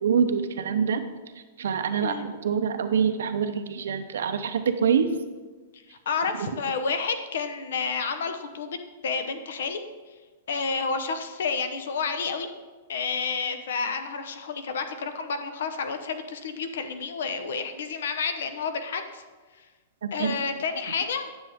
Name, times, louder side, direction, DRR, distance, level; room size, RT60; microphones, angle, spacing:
voice 1, 0.0-1.0 1.6-5.1 20.0-20.4, right 7 dB, 85° right, 8 dB, 0.7 m, -25 dB
voice 2, 1.9-2.3 5.7-8.8 9.0-9.8 10.5-12.5 12.9-19.2 19.6-19.7 20.1-21.3, left 5 dB, 70° left, 8 dB, 0.9 m, -30 dB
9.9 x 7.0 x 3.6 m, 1.3 s
supercardioid pair, 170°, 0 cm